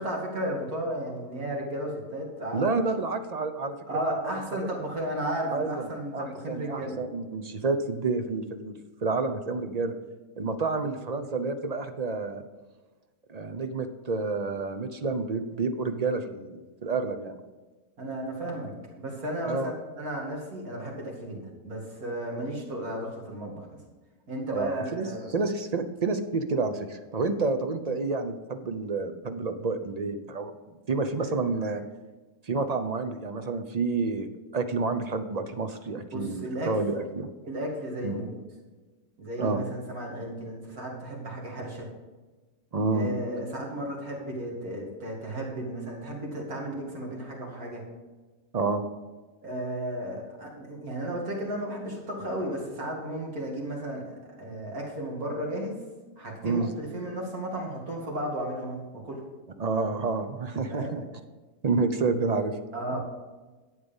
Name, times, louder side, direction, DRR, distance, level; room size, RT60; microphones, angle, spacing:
voice 1, 0.0-2.7 3.9-6.9 18.0-23.8 24.3-25.3 36.1-36.7 37.4-38.4 39.2-41.9 42.9-47.8 49.4-55.8 56.2-59.2 60.7-61.0 62.7-63.0, right 1 dB, 85° right, -1 dB, 3.0 m, -34 dB
voice 2, 2.5-4.4 5.5-5.9 6.1-9.9 10.4-12.4 13.3-17.4 19.4-19.7 24.5-30.5 30.9-31.8 32.4-37.3 38.0-38.2 39.4-39.6 42.7-43.1 48.5-48.8 56.4-56.7 59.6-61.0 61.6-62.6 62.9-63.0, right 3 dB, 45° right, 8 dB, 0.5 m, -29 dB
11.0 x 8.2 x 5.4 m, 1.3 s
omnidirectional pair, 1.5 m